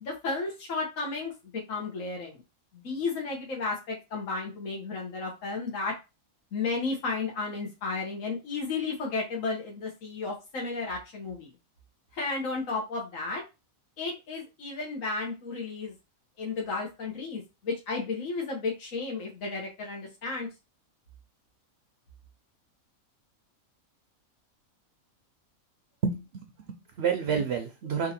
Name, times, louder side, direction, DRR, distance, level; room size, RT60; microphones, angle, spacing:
voice 1, 0.0-2.4 2.7-5.9 6.5-11.5 12.1-13.4 14.0-15.9 16.4-20.5, left 4 dB, 65° left, -2 dB, 1.5 m, -33 dB
voice 2, 26.0-28.1, right 6 dB, 60° right, 5 dB, 0.8 m, -29 dB
3.6 x 2.8 x 4.2 m, 0.26 s
omnidirectional pair, 1.5 m